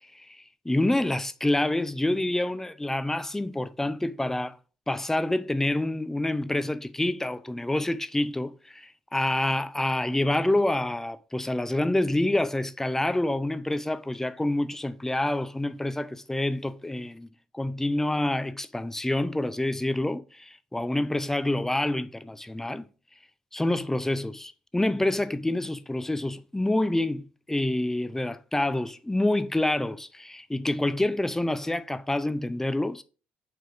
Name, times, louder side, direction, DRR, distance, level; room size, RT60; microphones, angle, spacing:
voice 1, 0.6-4.6 4.9-17.3 17.5-22.9 23.5-27.2 27.5-33.0, left 1 dB, 10° left, 0.5 m, -27 dB
5.2 x 4.4 x 4.8 m
figure-of-eight pair, 50°, 5 cm